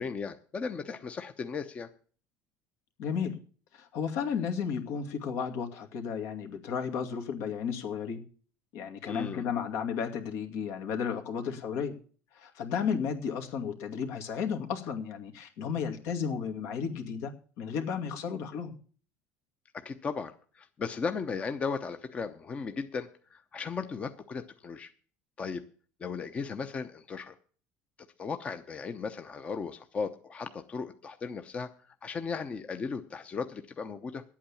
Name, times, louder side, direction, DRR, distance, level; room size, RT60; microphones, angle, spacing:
voice 1, 0.0-1.9 9.0-9.4 19.7-24.9 25.4-25.6 26.0-27.3 28.2-34.2, left 5 dB, 25° left, 8 dB, 0.8 m, -36 dB
voice 2, 3.0-3.4 3.7-8.2 8.7-11.9 12.3-17.3 17.6-18.7, left 7 dB, 70° left, 5 dB, 2.3 m, -33 dB
10.5 x 8.7 x 8.6 m, 0.42 s
cardioid pair, 140°, 5 cm